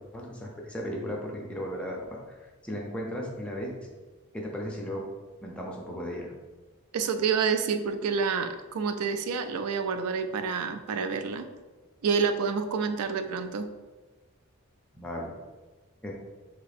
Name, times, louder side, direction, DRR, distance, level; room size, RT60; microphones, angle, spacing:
voice 1, 0.1-2.4 2.6-3.9 4.3-5.0 5.4-6.3 14.9-15.3 16.0-16.1, equal, 5° left, -2 dB, 0.6 m, -36 dB
voice 2, 6.9-11.5 12.0-13.7, right 5 dB, 90° right, 8 dB, 0.4 m, -28 dB
3.3 x 2.9 x 4.1 m, 1.3 s
head